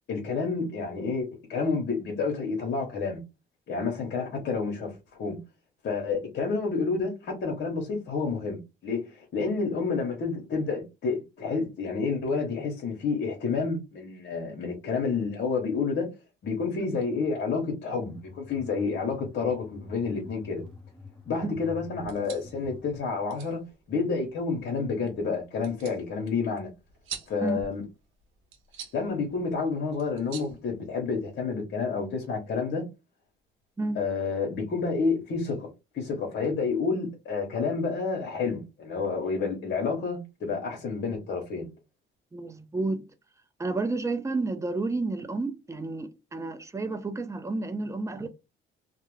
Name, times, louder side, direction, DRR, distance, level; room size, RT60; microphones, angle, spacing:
voice 1, 0.1-3.2 3.7-5.4 5.8-16.1 16.4-20.6 21.3-23.6 23.9-26.7 27.3-27.8 28.9-32.8 34.0-41.7, left 4 dB, 60° left, 0.9 m, -29 dB
sound 1, 18.0-23.0, left 4 dB, 5° left, 0.9 m, -46 dB
sound 2, 21.9-31.4, right 7 dB, 85° right, 0.8 m, -47 dB
voice 2, 42.3-43.1 43.6-48.3, right 3 dB, 15° right, 0.5 m, -31 dB
2.3 x 2.1 x 3.0 m
cardioid pair, 90°, 20 cm